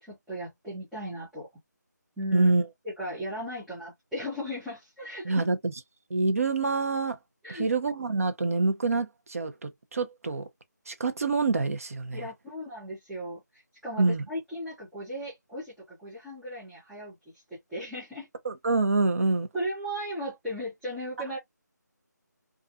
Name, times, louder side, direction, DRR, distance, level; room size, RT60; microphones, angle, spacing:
voice 1, 0.0-1.5 2.2-2.5 2.8-5.4 7.4-7.7 12.1-18.3 19.5-21.4, equal, ahead, 0.4 m, -36 dB
voice 2, 2.3-2.6 5.2-5.7 6.1-7.2 7.5-10.5 10.9-12.2 14.0-14.2 18.4-19.5, right 3 dB, 50° right, 0.7 m, -26 dB
2.4 x 2.4 x 2.4 m
figure-of-eight pair, 160°, 10 cm